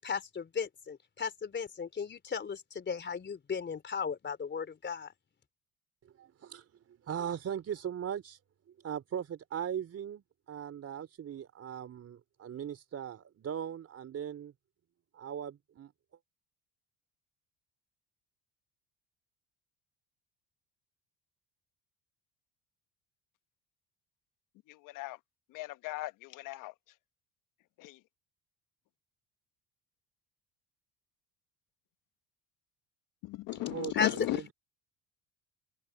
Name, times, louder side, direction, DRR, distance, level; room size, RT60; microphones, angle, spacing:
voice 1, 0.0-5.1 33.9-34.3, left 6 dB, 35° left, 3.8 m, -35 dB
voice 2, 6.0-8.4 8.7-14.5 15.1-15.9 33.5-34.5, right 9 dB, 45° right, 4.2 m, -39 dB
voice 3, 24.8-25.2 25.5-26.7 27.8-28.0 33.2-34.4, left 18 dB, 70° left, 1.1 m, -36 dB
supercardioid pair, 85°, 33 cm